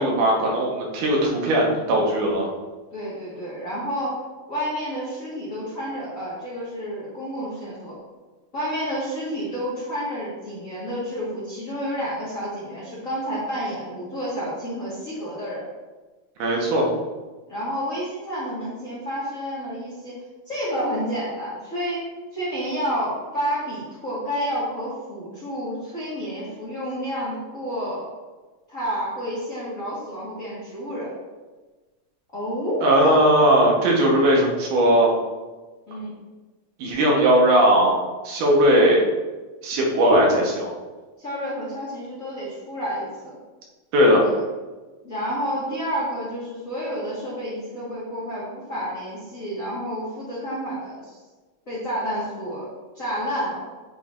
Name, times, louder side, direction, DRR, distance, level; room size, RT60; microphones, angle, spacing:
voice 1, 0.0-2.5 16.4-16.9 32.8-35.1 36.8-38.0 38.2-39.0 39.6-40.7 43.9-44.3, right 1 dB, 85° right, -2 dB, 2.6 m, -18 dB
voice 2, 2.9-4.2 4.5-8.0 8.5-15.6 17.5-20.1 20.5-22.0 22.3-28.1 28.7-31.1 32.3-33.2 35.9-36.1 41.2-43.4 44.2-44.4 45.0-51.2 51.7-52.7 52.9-53.6, equal, 40° left, -8 dB, 1.3 m, -30 dB
8.9 x 4.5 x 2.5 m, 1.3 s
omnidirectional pair, 3.4 m